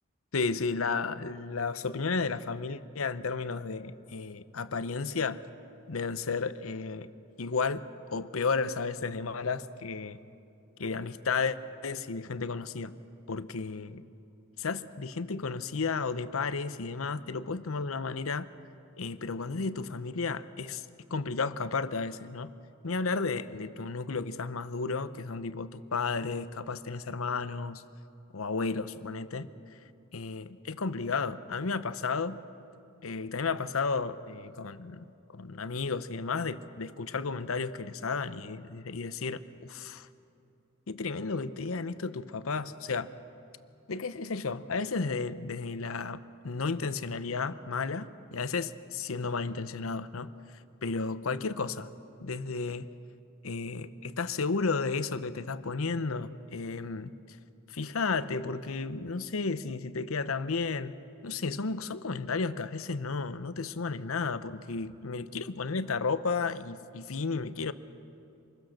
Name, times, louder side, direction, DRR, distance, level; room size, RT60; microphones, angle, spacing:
voice 1, 0.3-5.4 5.9-7.1 7.4-10.2 10.8-11.6 11.8-12.9 13.3-14.0 14.6-18.5 19.0-20.8 21.1-22.5 22.8-27.8 28.3-29.5 30.1-32.4 33.0-35.1 35.3-40.1 40.9-43.1 43.9-50.3 50.8-51.9 52.2-52.9 53.4-57.4 57.7-61.0 61.2-67.7, left 4 dB, 80° left, 13 dB, 0.8 m, -33 dB
26.5 x 21.5 x 6.5 m, 2.7 s
head